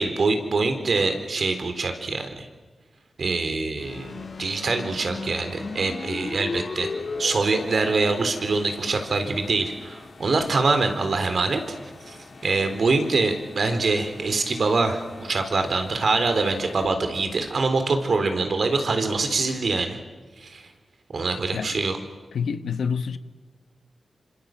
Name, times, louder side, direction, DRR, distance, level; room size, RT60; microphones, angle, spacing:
voice 1, 0.0-2.5 3.2-6.9 7.2-11.8 12.1-20.0 20.4-20.6 21.1-22.0, right 3 dB, 65° right, 3.9 m, -24 dB
sound 1, 3.8-16.9, left 4 dB, 60° left, 3.0 m, -38 dB
voice 2, 22.3-23.2, left 6 dB, 85° left, 1.2 m, -27 dB
27.0 x 26.0 x 7.8 m
cardioid pair, 70°, 0 cm